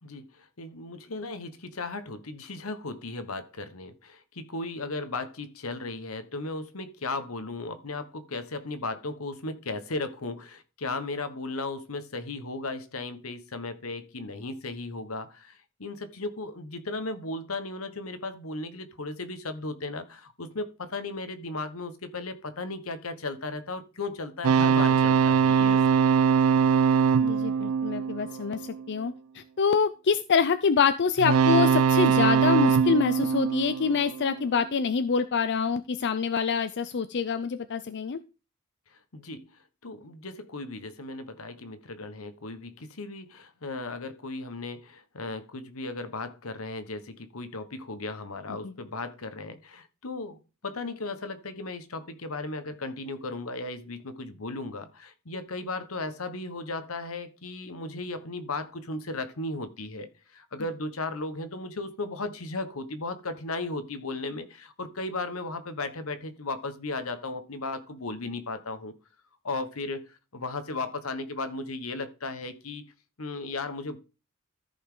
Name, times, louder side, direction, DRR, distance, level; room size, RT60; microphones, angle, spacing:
voice 1, 0.0-25.8 38.9-69.0 69.4-72.9 73.2-74.0, left 3 dB, 85° left, 1.3 m, -36 dB
sound 1, 24.4-28.8 31.2-34.5, right 6 dB, 85° right, 0.4 m, -22 dB
voice 2, 27.2-38.2 48.6-48.7, left 5 dB, 55° left, 0.5 m, -26 dB
14.0 x 5.5 x 3.8 m
head